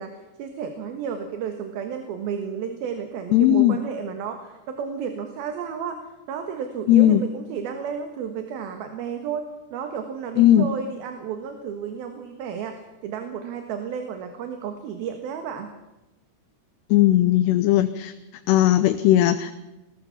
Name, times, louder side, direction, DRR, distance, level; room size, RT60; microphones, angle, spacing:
voice 1, 0.0-6.0 6.3-9.4 9.7-15.7, right 7 dB, 65° right, 6 dB, 3.2 m, -32 dB
voice 2, 3.3-3.8 6.9-7.2 10.4-10.7 16.9-18.1 18.5-19.5, left 13 dB, 80° left, 10 dB, 2.8 m, -17 dB
21.5 x 19.5 x 7.2 m, 0.98 s
omnidirectional pair, 4.9 m